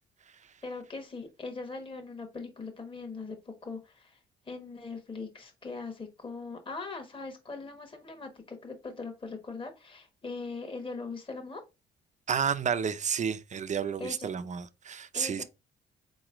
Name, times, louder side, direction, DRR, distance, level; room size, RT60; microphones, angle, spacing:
voice 1, 0.6-4.2 4.5-11.6 14.0-14.3 15.1-15.4, left 3 dB, 25° left, 1.2 m, -40 dB
voice 2, 12.3-15.4, right 7 dB, 35° right, 0.5 m, -31 dB
4.2 x 3.0 x 3.7 m
cardioid pair, 90°, 20 cm